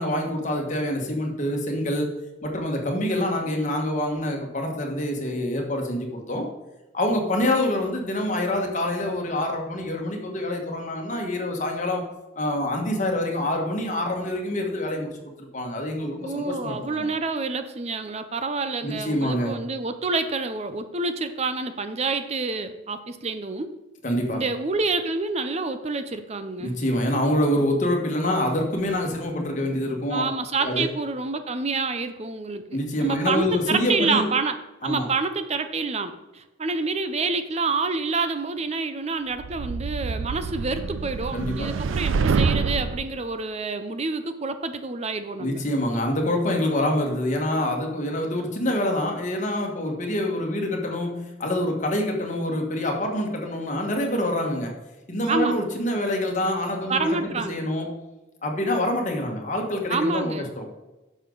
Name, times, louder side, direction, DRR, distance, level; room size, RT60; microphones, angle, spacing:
voice 1, 0.0-2.1 2.4-6.5 6.9-12.1 12.3-17.1 18.8-19.5 24.0-24.4 26.6-30.2 30.6-30.9 32.7-34.2 34.8-35.1 41.3-41.8 45.4-54.8 55.1-57.9 58.4-60.6, left 1 dB, 40° left, 1 dB, 1.6 m, -26 dB
voice 2, 16.2-23.7 24.3-26.8 30.1-34.6 34.8-45.6 55.3-55.6 56.9-57.6 59.9-60.5, right 3 dB, 35° right, 10 dB, 0.6 m, -28 dB
sound 1, 39.4-43.1, right 5 dB, 90° right, 0.4 m, -26 dB
10.0 x 6.5 x 3.9 m, 1.1 s
head